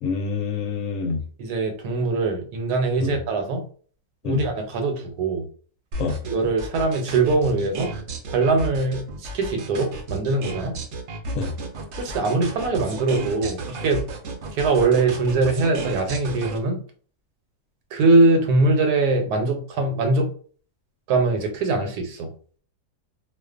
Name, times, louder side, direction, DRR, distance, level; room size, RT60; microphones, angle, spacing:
voice 1, 0.0-1.2 3.0-3.2 4.2-4.4 6.0-6.2 11.3-11.5, left 5 dB, 70° left, 3 dB, 0.8 m, -26 dB
voice 2, 1.4-3.6 4.2-5.4 6.3-7.9 8.3-10.8 12.0-14.1 14.5-16.8 17.9-20.3 21.1-22.3, right 3 dB, 85° right, 4 dB, 1.1 m, -22 dB
sound 1, 5.9-16.6, right 3 dB, 65° right, 0.7 m, -33 dB
2.4 x 2.3 x 2.4 m, 0.43 s
omnidirectional pair, 1.6 m